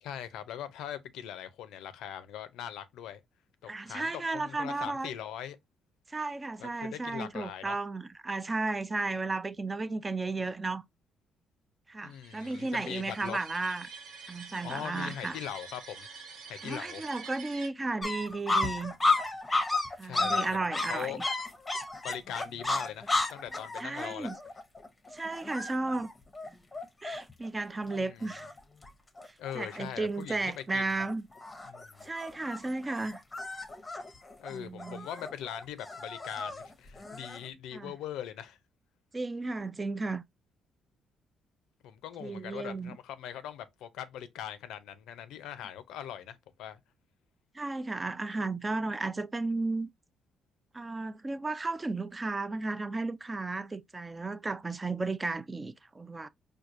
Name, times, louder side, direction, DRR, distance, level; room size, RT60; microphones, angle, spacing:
voice 1, 0.0-3.2 3.6-5.6 6.6-7.8 12.0-13.4 14.6-16.1 16.5-17.0 20.0-21.2 22.0-24.3 27.9-28.3 29.4-30.9 31.7-32.1 34.4-38.6 41.8-46.8, left 10 dB, 90° left, 0.5 m, -41 dB
voice 2, 3.7-5.1 6.1-10.8 11.9-13.9 14.3-15.4 16.6-18.9 20.0-21.2 23.8-24.4 25.1-26.1 27.0-28.5 29.5-31.2 32.0-33.2 34.5-35.1 37.7-37.9 39.1-40.2 42.2-43.0 47.5-49.9 50.7-56.3, right 3 dB, 25° right, 0.3 m, -34 dB
sound 1, 12.1-17.7, right 5 dB, 70° right, 1.4 m, -47 dB
sound 2, 18.0-27.5 27.9-28.0 28.2-28.9 29.2-29.8 30.3-30.6 30.9-37.5, left 2 dB, 20° left, 0.7 m, -33 dB
4.5 x 2.3 x 2.5 m
cardioid pair, 90°, 0 cm